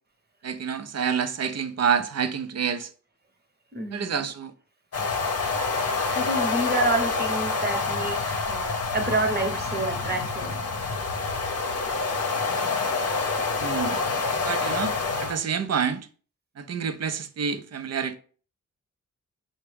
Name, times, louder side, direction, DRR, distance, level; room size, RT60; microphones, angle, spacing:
voice 1, 0.4-2.9 3.9-4.5 13.6-14.0 14.4-16.1 16.6-18.2, right 7 dB, 50° right, 0.5 m, -28 dB
voice 2, 3.7-4.2 6.1-10.6, right 2 dB, 30° right, 1.0 m, -28 dB
sound 1, 4.9-15.4, left 4 dB, 50° left, 0.7 m, -27 dB
5.7 x 2.1 x 3.3 m
cardioid pair, 65°, 33 cm